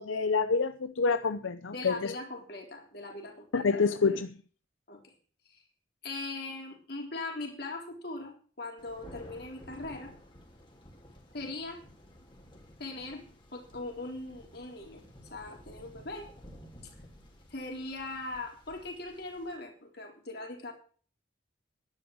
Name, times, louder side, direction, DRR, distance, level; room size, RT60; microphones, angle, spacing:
voice 1, 0.0-2.1 3.5-4.3, left 4 dB, 80° left, 11 dB, 0.7 m, -27 dB
voice 2, 1.7-3.7 4.9-5.1 5.5-5.6 6.0-10.1 11.3-11.8 12.8-13.3 13.5-15.0 15.3-16.3 17.5-20.7, left 2 dB, 50° left, 2 dB, 3.7 m, -40 dB
Thunder, 8.8-19.6, equal, 25° left, 3.0 m, -53 dB
11.0 x 10.5 x 6.4 m, 0.43 s
head